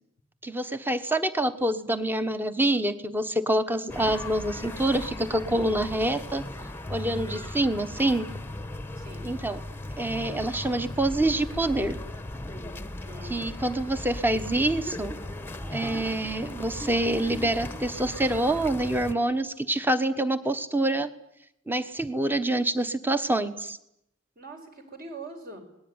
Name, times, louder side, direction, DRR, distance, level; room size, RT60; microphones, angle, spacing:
voice 1, 0.4-6.4 6.9-8.3 9.2-9.6 10.0-12.0 13.3-15.1 15.7-21.1 21.7-23.8, right 1 dB, 10° right, 11 dB, 1.2 m, -26 dB
sound 1, 3.9-19.1, left 1 dB, 10° left, 1.1 m, -37 dB
voice 2, 7.0-7.5 9.0-9.4 13.1-13.6 24.3-25.6, right 2 dB, 45° right, 5 dB, 5.0 m, -43 dB
28.0 x 20.0 x 9.7 m, 0.81 s
head